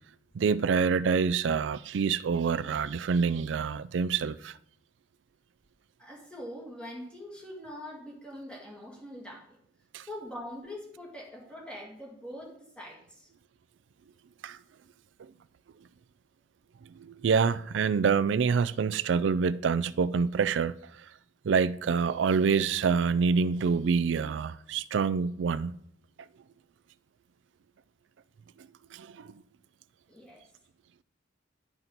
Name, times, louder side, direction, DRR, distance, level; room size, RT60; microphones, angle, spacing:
voice 1, 0.3-4.5 9.9-10.0 14.4-14.6 17.0-20.7 21.4-25.7 28.9-29.3, right 5 dB, 70° right, 0.4 m, -26 dB
voice 2, 6.0-9.6 10.0-13.3 30.1-30.4, left 1 dB, 5° left, 2.3 m, -43 dB
11.0 x 5.8 x 4.0 m
head